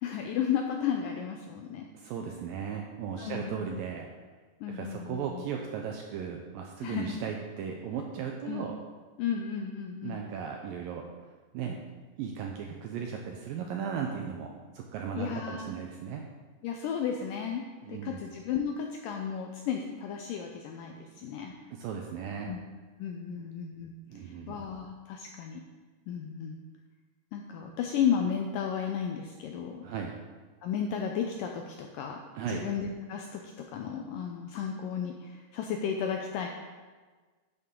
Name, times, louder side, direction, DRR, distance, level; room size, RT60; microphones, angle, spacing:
voice 1, 0.0-1.9 3.1-3.8 4.6-5.4 6.8-7.2 8.5-8.7 9.2-10.2 15.2-15.7 16.6-17.6 17.9-21.5 22.5-22.6 23.0-23.9 24.2-25.6 26.1-26.6 27.3-29.8 30.6-32.2 32.5-33.4 33.7-36.5, left 7 dB, 85° left, 3 dB, 1.9 m, -33 dB
voice 2, 1.9-4.1 4.7-8.8 10.0-11.1 11.5-11.8 12.2-16.3 17.8-18.3 21.2-21.3 21.7-22.5 23.4-23.5 24.1-24.6 29.8-30.2 32.4-32.7, right 7 dB, 80° right, 2 dB, 2.1 m, -36 dB
11.0 x 8.4 x 3.7 m, 1.4 s
omnidirectional pair, 4.6 m